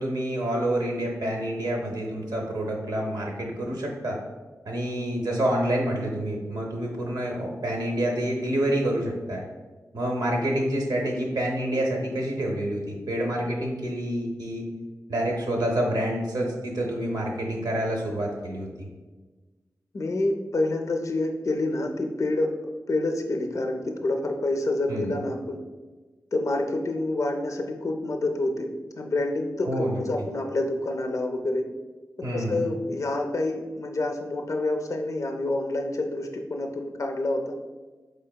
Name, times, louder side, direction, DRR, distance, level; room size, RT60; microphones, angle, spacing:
voice 1, 0.0-4.2 4.6-9.4 9.9-14.7 15.1-18.9 24.9-25.2 29.6-30.0 32.2-32.7, right 1 dB, 80° right, 0 dB, 0.7 m, -28 dB
voice 2, 19.9-22.5 22.9-25.6 26.3-28.7 29.0-31.7 32.2-37.5, left 2 dB, 55° left, 4 dB, 0.4 m, -28 dB
4.5 x 3.3 x 2.2 m, 1.3 s
cardioid pair, 55°, 7 cm